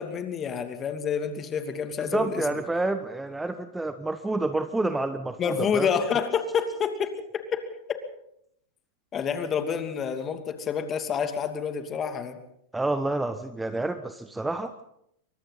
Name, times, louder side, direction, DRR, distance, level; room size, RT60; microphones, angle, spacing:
voice 1, 0.0-2.5 5.4-8.0 9.1-12.4, left 7 dB, 25° left, 7 dB, 2.8 m, -28 dB
voice 2, 2.0-5.9 12.7-14.7, right 2 dB, 5° right, 10 dB, 1.1 m, -29 dB
27.5 x 24.5 x 4.2 m, 0.75 s
figure-of-eight pair, 90°, 0 cm